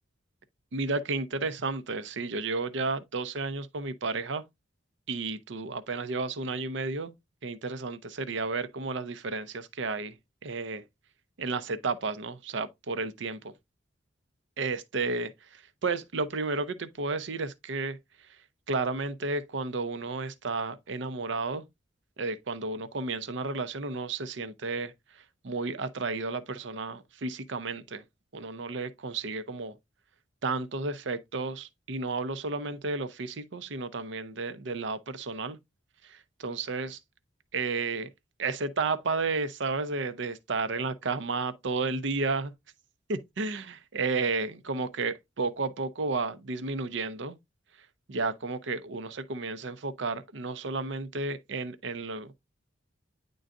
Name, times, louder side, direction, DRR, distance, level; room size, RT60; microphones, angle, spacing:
voice 1, 0.7-4.4 5.1-7.1 7.4-10.2 10.4-10.8 11.4-13.5 14.6-18.0 18.7-21.7 22.2-28.0 28.3-29.8 30.4-35.6 36.0-37.0 37.5-38.1 38.4-42.5 43.1-47.4 48.1-52.3, right 3 dB, 70° right, 0.6 m, -32 dB
10.0 x 3.9 x 2.5 m
head